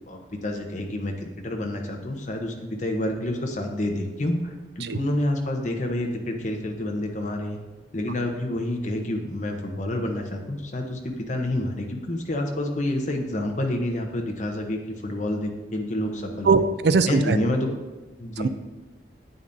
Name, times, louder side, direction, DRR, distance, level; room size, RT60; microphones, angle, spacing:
voice 1, 0.1-7.6 7.9-16.6 17.1-17.7 18.2-18.5, left 1 dB, 40° left, 2 dB, 0.9 m, -28 dB
voice 2, 16.5-17.4 18.4-18.5, right 4 dB, 60° right, 11 dB, 0.4 m, -20 dB
9.0 x 8.4 x 2.7 m, 1.2 s
head